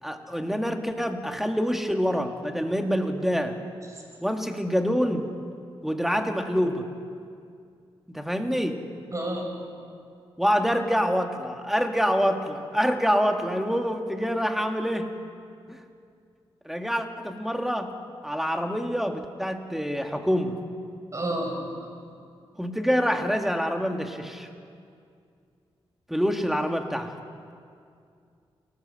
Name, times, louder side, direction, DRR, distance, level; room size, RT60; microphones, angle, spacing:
voice 1, 0.0-3.6 4.2-5.3 5.8-6.9 8.1-8.8 10.4-15.1 15.7-15.8 16.7-17.9 18.2-20.6 22.6-24.5 26.1-27.2, equal, 5° right, 5 dB, 1.9 m, -26 dB
voice 2, 9.1-9.6 21.1-21.7, right 1 dB, 30° right, 2 dB, 6.3 m, -30 dB
29.0 x 13.5 x 7.6 m, 2.3 s
cardioid pair, 65°, 10 cm